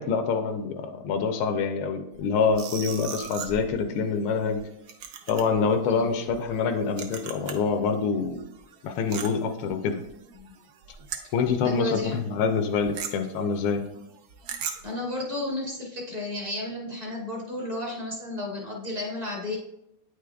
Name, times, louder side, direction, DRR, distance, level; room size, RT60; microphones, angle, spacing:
voice 1, 0.0-4.6 5.3-8.4 8.8-10.0 11.3-13.8, left 5 dB, 90° left, 6 dB, 1.5 m, -26 dB
sound 1, 2.1-7.8 8.1-11.7 12.0-12.2 12.4-14.9, right 7 dB, 70° right, 1.0 m, -39 dB
voice 2, 11.6-12.2 14.8-19.6, left 1 dB, 35° right, -1 dB, 0.6 m, -32 dB
9.0 x 4.8 x 2.3 m, 0.83 s
omnidirectional pair, 2.3 m